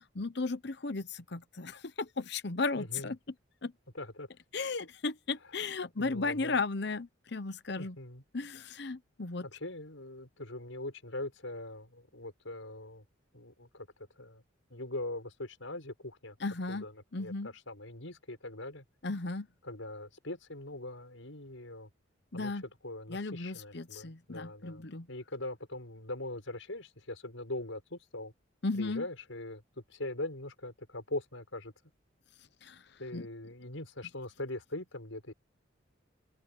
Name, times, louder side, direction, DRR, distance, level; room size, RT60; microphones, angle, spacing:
voice 1, 0.2-3.2 3.6-3.7 4.5-8.0 8.3-9.5 16.4-16.8 17.1-17.5 19.0-19.5 22.3-22.6 23.1-25.1 28.6-29.0 32.6-32.8 33.1-33.3, left 3 dB, 60° left, 0.9 m, -35 dB
voice 2, 2.7-3.1 3.9-4.3 5.4-5.6 6.0-6.6 7.8-8.2 9.4-13.0 13.3-13.9 14.2-14.4 14.7-16.4 16.7-18.8 19.6-21.9 22.3-22.5 22.8-28.3 28.7-29.6 29.9-31.7 33.0-35.3, left 2 dB, 90° left, 6.4 m, -41 dB
open air
head